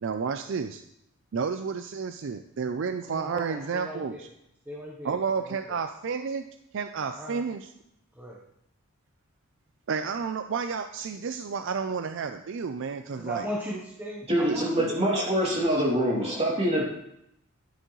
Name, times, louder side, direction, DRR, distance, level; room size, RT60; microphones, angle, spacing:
voice 1, 0.0-0.8 1.3-4.3 5.0-6.4 6.7-7.7 9.9-13.5 14.5-14.6, right 5 dB, 60° right, 9 dB, 0.4 m, -31 dB
voice 2, 3.1-4.2 4.7-5.6 7.2-7.4 8.2-8.4 13.1-15.7 16.2-16.4, equal, 10° right, -3 dB, 0.9 m, -38 dB
voice 3, 14.3-16.8, equal, 30° right, -4 dB, 2.7 m, -25 dB
11.0 x 9.1 x 3.1 m, 0.78 s
head